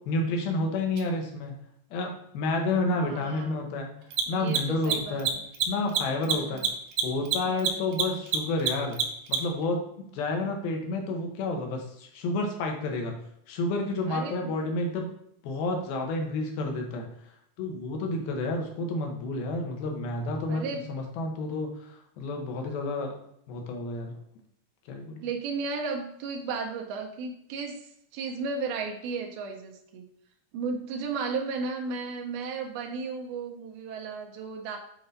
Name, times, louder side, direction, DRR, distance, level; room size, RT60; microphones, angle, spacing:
voice 1, 0.0-1.5 1.9-3.9 4.3-5.3 5.7-6.6 7.0-9.0 9.3-9.8 10.1-13.2 13.5-15.1 15.4-17.1 17.6-23.2 23.5-24.1 24.9-25.3, left 2 dB, 80° left, 3 dB, 3.0 m, -30 dB
Mechanisms, 1.0-1.1 4.0-9.6, right 7 dB, 70° right, 2.5 m, -27 dB
voice 2, 3.0-3.7 4.3-5.5 6.3-6.7 7.5-7.8 14.1-14.5 20.5-20.9 25.2-30.1 30.5-34.8, right 4 dB, 90° right, 2 dB, 2.7 m, -34 dB
8.4 x 4.0 x 4.0 m, 0.73 s
omnidirectional pair, 4.3 m